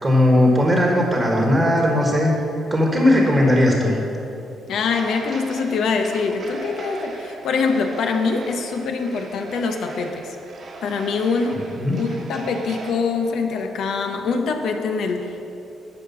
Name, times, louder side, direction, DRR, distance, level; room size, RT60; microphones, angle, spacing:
voice 1, 0.0-2.3 2.7-4.0 11.8-12.0, left 1 dB, 20° right, 0 dB, 1.4 m, -17 dB
voice 2, 4.7-10.4 10.8-11.7 12.0-15.4, left 4 dB, 75° left, 5 dB, 0.9 m, -24 dB
sound 1, 4.9-12.9, right 3 dB, 50° right, 1.4 m, -38 dB
10.5 x 4.9 x 7.1 m, 2.9 s
cardioid pair, 90°, 0 cm